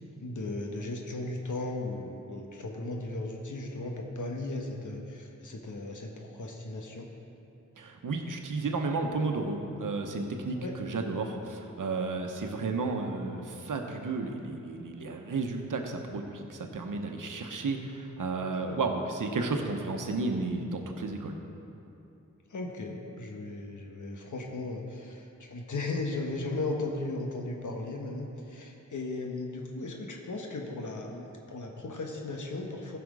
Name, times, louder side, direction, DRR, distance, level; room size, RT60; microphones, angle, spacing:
voice 1, 0.2-7.1 10.6-10.8 18.5-18.8 22.5-33.0, left 2 dB, 75° left, 1 dB, 1.2 m, -36 dB
voice 2, 7.8-21.4, right 3 dB, 85° right, 3 dB, 1.0 m, -33 dB
15.0 x 6.0 x 4.8 m, 2.8 s
wide cardioid pair, 75°, 31 cm